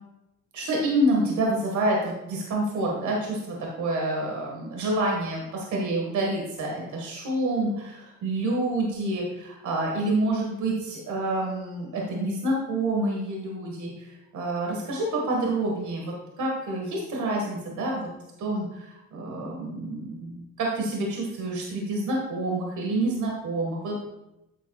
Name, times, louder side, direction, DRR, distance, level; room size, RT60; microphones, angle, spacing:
voice 1, 0.5-18.1 18.4-24.0, right 1 dB, 75° right, -1 dB, 1.7 m, -28 dB
8.6 x 8.4 x 2.4 m, 0.92 s
cardioid pair, 90°, 30 cm